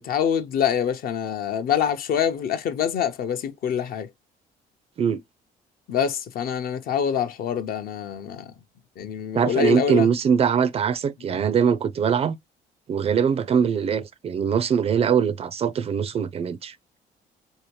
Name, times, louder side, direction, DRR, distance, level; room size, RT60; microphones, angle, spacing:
voice 1, 0.0-4.1 5.9-8.5 9.0-10.1, left 8 dB, 60° left, 0.7 m, -25 dB
voice 2, 9.3-12.4 12.9-17.0, right 7 dB, 35° right, 0.4 m, -22 dB
3.4 x 2.7 x 3.0 m
cardioid pair, 110°, 17 cm